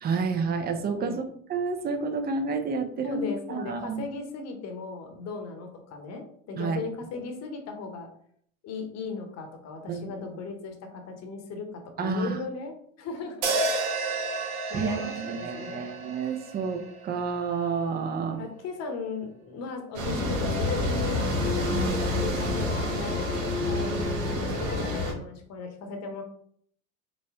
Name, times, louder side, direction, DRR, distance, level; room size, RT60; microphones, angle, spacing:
voice 1, 0.0-1.2 1.5-4.0 6.6-6.8 9.9-10.1 12.0-12.4 14.7-18.4 21.7-22.0, right 5 dB, 25° right, 6 dB, 0.5 m, -30 dB
voice 2, 0.9-1.3 3.0-8.1 8.6-12.7 13.0-13.5 14.3-15.8 18.4-21.3 21.7-26.2, left 4 dB, 45° left, 4 dB, 0.9 m, -37 dB
sound 1, 13.4-17.7, right 3 dB, 60° right, 0.9 m, -31 dB
sound 2, 19.9-25.1, equal, 85° right, 1.0 m, -29 dB
sound 3, 20.1-25.1, left 5 dB, 25° left, 0.6 m, -34 dB
4.0 x 2.1 x 3.4 m, 0.65 s
hypercardioid pair, 75°, 38 cm